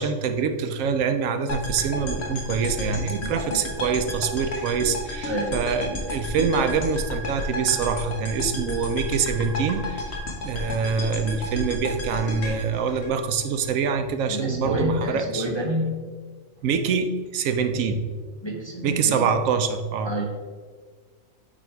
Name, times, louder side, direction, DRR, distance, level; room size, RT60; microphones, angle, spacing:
voice 1, 0.0-10.2 10.4-15.5 16.6-18.1 18.8-20.2, right 6 dB, 75° right, 8 dB, 0.9 m, -25 dB
sound 1, 1.5-13.7, left 1 dB, 55° left, 1.3 m, -32 dB
voice 2, 5.2-5.6 14.3-16.1 18.4-19.2 20.1-20.3, equal, 25° left, -2 dB, 0.6 m, -28 dB
8.6 x 3.3 x 4.4 m, 1.5 s
omnidirectional pair, 1.4 m